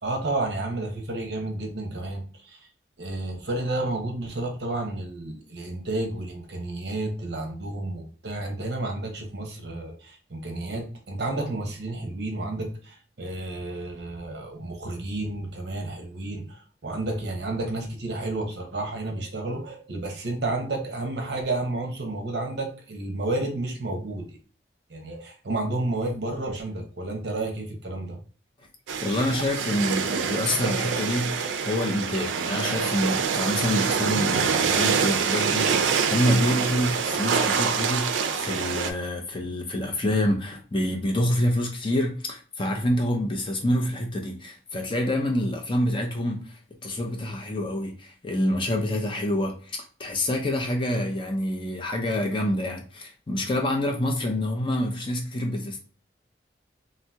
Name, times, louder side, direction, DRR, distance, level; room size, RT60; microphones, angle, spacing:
voice 1, 0.0-2.6 3.0-24.4 24.9-28.2, right 2 dB, 65° right, 0.7 m, -31 dB
sound 1, 28.9-38.9, right 6 dB, 85° right, 0.4 m, -25 dB
voice 2, 29.0-46.5 46.8-55.8, left 1 dB, 25° left, 0.5 m, -27 dB
2.8 x 2.0 x 3.4 m
head